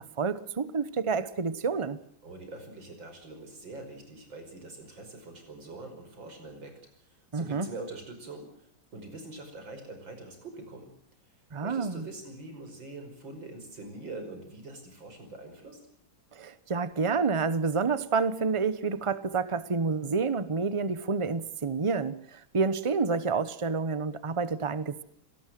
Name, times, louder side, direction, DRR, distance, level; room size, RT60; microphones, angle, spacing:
voice 1, 0.0-2.0 7.3-7.7 11.5-12.1 16.3-25.0, right 4 dB, 25° right, 14 dB, 0.8 m, -29 dB
voice 2, 2.2-6.7 7.0-10.9 11.6-15.8, right 2 dB, 70° right, 6 dB, 6.2 m, -44 dB
25.5 x 18.5 x 7.7 m, 0.64 s
omnidirectional pair, 2.1 m